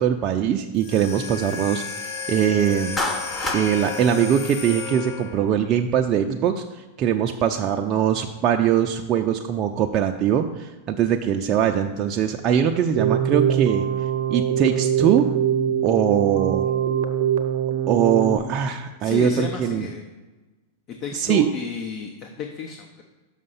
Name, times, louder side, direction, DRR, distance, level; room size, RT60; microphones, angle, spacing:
voice 1, 0.0-3.0 3.5-13.9 14.3-15.3 15.8-16.7 17.9-19.9 21.1-21.5, right 9 dB, 40° right, 3 dB, 0.5 m, -22 dB
sound 1, 0.7-5.5, left 6 dB, 60° left, 1.4 m, -33 dB
Clapping, 3.0-3.7, left 2 dB, 15° left, 1.1 m, -26 dB
Keyboard (musical), 13.0-18.4, right 9 dB, 75° right, 0.8 m, -23 dB
voice 2, 19.0-20.0 20.9-23.0, left 6 dB, 40° left, 3 dB, 0.9 m, -32 dB
6.4 x 5.1 x 5.7 m, 1.2 s
hypercardioid pair, 115°, 0 cm